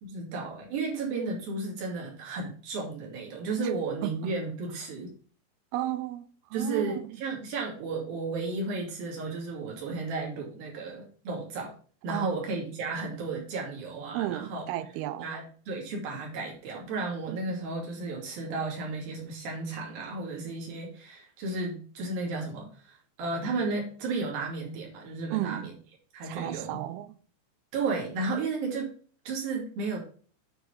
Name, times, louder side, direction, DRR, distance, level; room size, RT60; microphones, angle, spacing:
voice 1, 0.0-5.1 6.5-11.7 12.0-14.6 15.2-25.7 26.1-26.8 27.7-28.9 29.3-30.0, right 3 dB, 55° right, 4.2 m, -33 dB
voice 2, 5.7-7.1 12.1-12.3 14.1-15.3 17.3-17.4 25.3-25.7 26.2-27.1, right 14 dB, 85° right, 2.2 m, -33 dB
9.0 x 4.9 x 5.2 m
omnidirectional pair, 5.1 m